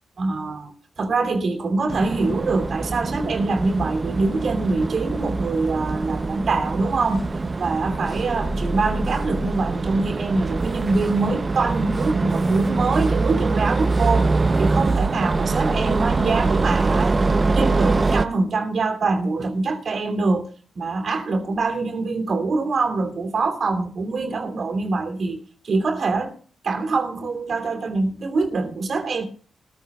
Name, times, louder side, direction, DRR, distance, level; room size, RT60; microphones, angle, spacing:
voice 1, 0.2-7.2 7.6-14.3 14.6-25.4 25.6-26.4 26.6-29.2, right 3 dB, 60° right, 2.8 m, -24 dB
sound 1, 1.9-18.3, right 3 dB, 35° right, 0.7 m, -23 dB
21.0 x 14.5 x 2.4 m
cardioid pair, 70°, 0 cm